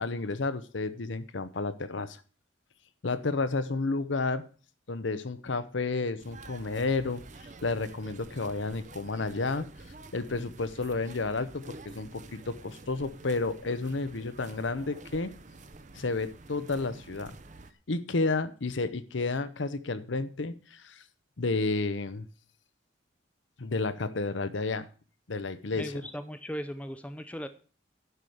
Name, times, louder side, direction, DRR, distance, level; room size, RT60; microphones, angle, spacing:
voice 1, 0.0-2.2 3.0-4.4 4.9-7.2 7.6-9.7 10.1-15.3 15.9-17.4 17.9-21.0 21.4-22.3 23.6-24.9 25.3-26.0, left 3 dB, 70° left, 13 dB, 0.8 m, -31 dB
sound 1, 6.2-17.7, right 2 dB, 40° right, 0.8 m, -49 dB
voice 2, 25.7-27.5, equal, 5° left, 10 dB, 0.6 m, -37 dB
11.0 x 5.0 x 7.8 m, 0.38 s
head